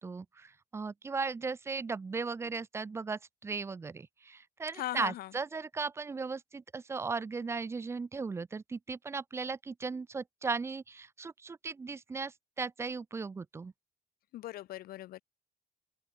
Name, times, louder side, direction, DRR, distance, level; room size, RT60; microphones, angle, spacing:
voice 1, 0.0-13.7, right 4 dB, 15° right, 0.3 m, -37 dB
voice 2, 4.7-5.3 14.3-15.2, left 14 dB, 65° left, 0.6 m, -39 dB
cardioid pair, 110°, 17 cm